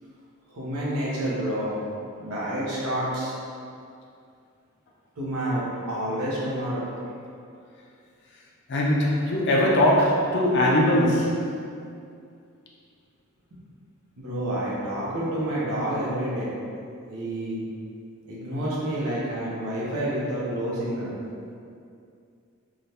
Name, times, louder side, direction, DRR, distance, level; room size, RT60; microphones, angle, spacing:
voice 1, 0.5-1.8 2.2-3.3 5.2-6.8 14.2-16.5 17.1-17.6 18.3-21.1, right 1 dB, 80° right, -7 dB, 0.7 m, -29 dB
voice 2, 8.7-11.5, left 1 dB, 50° left, -2 dB, 0.4 m, -21 dB
3.3 x 2.4 x 2.7 m, 2.4 s
head